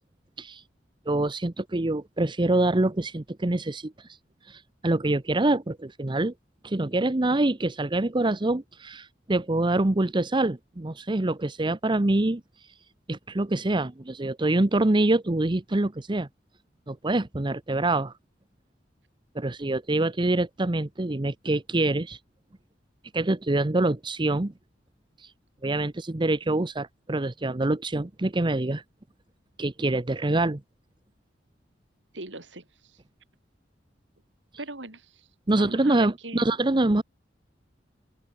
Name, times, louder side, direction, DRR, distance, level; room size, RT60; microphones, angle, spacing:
voice 1, 1.1-3.9 4.5-6.3 6.6-12.4 13.1-16.3 16.9-18.1 19.3-22.2 23.1-24.5 25.6-28.8 29.6-30.6 35.5-37.0, right 2 dB, 25° right, 0.8 m, -25 dB
voice 2, 32.1-32.7 34.6-35.3 35.5-36.5, right 2 dB, 85° right, 5.6 m, -39 dB
open air
head